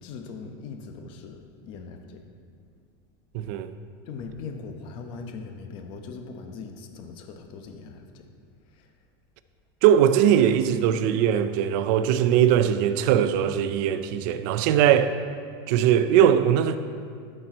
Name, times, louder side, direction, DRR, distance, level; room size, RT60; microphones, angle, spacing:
voice 1, 0.0-2.3 4.0-8.3 8.7-8.9, left 4 dB, 40° left, 0.8 m, -40 dB
voice 2, 3.3-3.7 9.8-15.1 15.7-16.8, right 10 dB, 50° right, 0.5 m, -20 dB
13.0 x 4.4 x 4.4 m
supercardioid pair, 155°, 12 cm